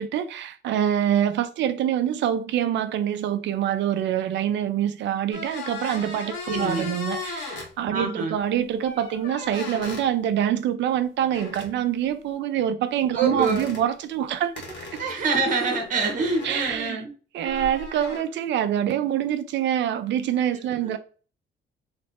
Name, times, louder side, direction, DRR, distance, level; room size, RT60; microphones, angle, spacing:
voice 1, 0.0-14.6 16.4-17.0 17.3-21.0, right 10 dB, 70° right, 0.6 m, -25 dB
sound 1, 5.3-7.7 8.8-10.1 11.3-11.7 13.2-13.8 14.6-16.8 17.4-18.2, left 4 dB, 70° left, 1.7 m, -37 dB
voice 2, 6.5-6.9 7.9-8.4 13.1-13.7 15.0-17.1 20.8-20.9, right 4 dB, 40° right, 1.4 m, -26 dB
3.3 x 3.2 x 4.3 m
cardioid pair, 150°, 20 cm